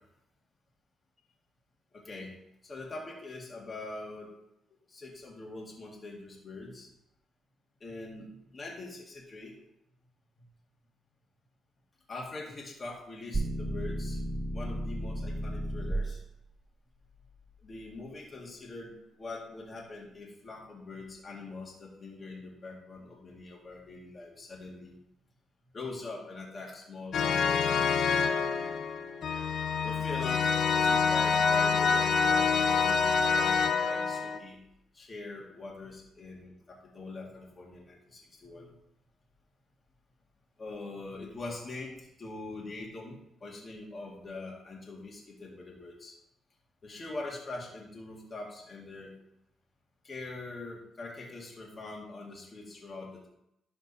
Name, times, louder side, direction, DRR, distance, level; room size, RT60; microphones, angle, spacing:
voice 1, 1.9-2.3 2.6-4.3 4.9-6.9 7.8-9.5 10.4-10.5 12.1-14.2 14.5-16.2 17.6-25.0 25.7-28.7 29.8-34.6 34.9-38.8 40.6-46.1 46.8-49.1 50.0-53.3, left 2 dB, 35° left, -3 dB, 2.4 m, -43 dB
sound 1, 13.3-16.1, right 1 dB, 20° right, 0.8 m, -33 dB
sound 2, 27.1-34.4, left 5 dB, 60° left, 0.8 m, -26 dB
12.5 x 4.4 x 4.3 m, 0.79 s
cardioid pair, 90°, 0 cm